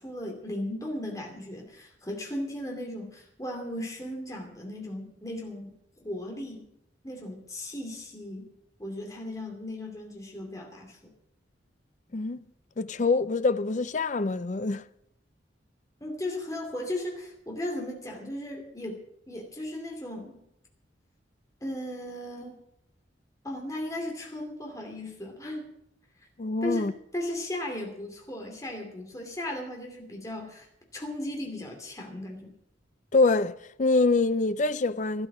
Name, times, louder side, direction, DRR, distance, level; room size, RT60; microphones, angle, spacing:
voice 1, 0.0-6.6 7.0-8.5 8.8-11.1 16.0-20.4 21.6-22.6 23.4-25.7 26.6-30.7 30.9-32.6, left 1 dB, 20° left, 2.7 m, -36 dB
voice 2, 12.8-14.8 26.4-26.9 33.1-33.5 33.8-35.3, left 3 dB, 40° left, 0.5 m, -25 dB
12.5 x 12.5 x 6.1 m
head